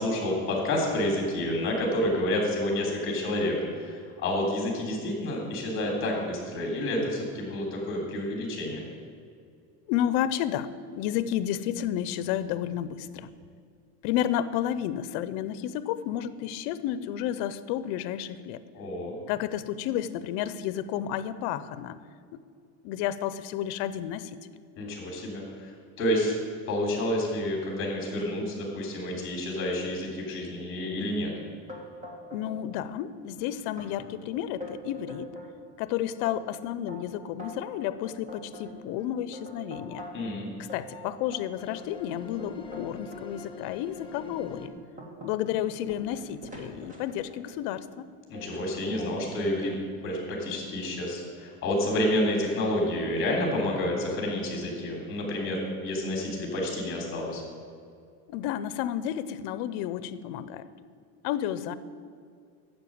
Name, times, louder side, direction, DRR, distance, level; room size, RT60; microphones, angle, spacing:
voice 1, 0.0-8.9 18.7-19.2 24.8-25.7 26.0-26.4 26.7-31.3 40.1-40.5 48.3-49.7 50.0-57.4, left 1 dB, 30° left, 0 dB, 3.0 m, -29 dB
voice 2, 9.9-13.3 14.0-18.6 19.3-22.0 22.8-24.4 32.3-35.3 35.8-40.1 40.7-44.7 45.2-48.0 58.3-60.7 61.2-61.7, left 11 dB, 70° left, 14 dB, 0.7 m, -31 dB
sound 1, 31.7-32.6 32.9-33.4 33.8-33.9 34.3-35.5 36.0-40.3 40.7-43.2 43.9-44.0 44.5-47.6 48.3-48.7 49.0-49.8, left 1 dB, 20° right, 1.9 m, -44 dB
sound 2, 39.0-39.2 39.6-40.1 40.8-41.1 41.6-44.7, left 5 dB, 10° left, 0.8 m, -44 dB
10.0 x 7.3 x 8.6 m, 2.3 s
cardioid pair, 165°, 41 cm